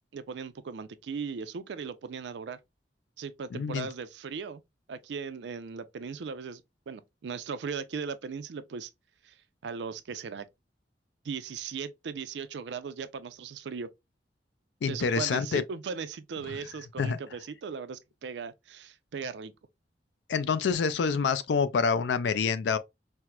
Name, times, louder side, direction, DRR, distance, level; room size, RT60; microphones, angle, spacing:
voice 1, 0.1-2.6 3.2-4.6 4.9-8.9 9.2-9.4 9.6-10.5 11.2-13.9 14.9-19.5, right 5 dB, 70° right, 0.4 m, -38 dB
voice 2, 3.5-3.9 14.8-15.6 17.0-17.2 20.3-22.8, left 5 dB, 70° left, 0.4 m, -27 dB
4.4 x 2.0 x 2.3 m
head